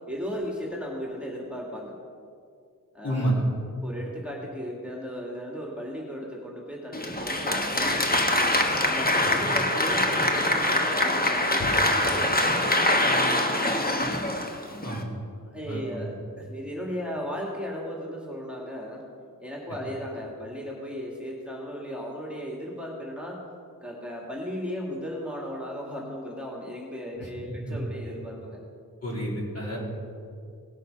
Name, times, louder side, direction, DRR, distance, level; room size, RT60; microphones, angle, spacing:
voice 1, 0.1-1.9 2.9-3.4 3.8-8.4 8.8-14.1 15.5-19.1 19.4-23.4 23.8-28.6, equal, 5° right, -3 dB, 2.3 m, -36 dB
voice 2, 3.0-3.4 9.2-9.4 14.8-15.1 15.7-15.8 27.2-27.8 29.0-29.8, right 1 dB, 45° left, -4 dB, 3.7 m, -30 dB
Applause, 6.9-15.0, left 1 dB, 25° left, 1.3 m, -24 dB
18.5 x 6.5 x 5.5 m, 2.3 s
wide cardioid pair, 65°, 36 cm